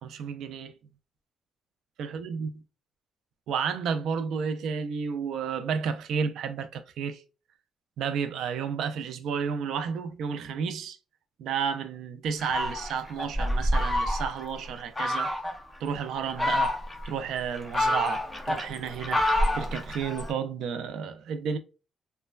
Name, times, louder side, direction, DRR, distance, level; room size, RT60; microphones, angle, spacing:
voice 1, 0.1-0.7 2.0-2.5 3.5-7.2 8.0-11.0 11.4-15.3 15.8-16.8 17.0-19.3 19.5-21.6, right 6 dB, 80° right, 0.4 m, -31 dB
Fowl, 12.4-14.5 15.0-15.6 16.2-17.1 17.5-20.3, left 1 dB, 15° left, 0.6 m, -27 dB
3.1 x 2.2 x 2.2 m
cardioid pair, 90°, 0 cm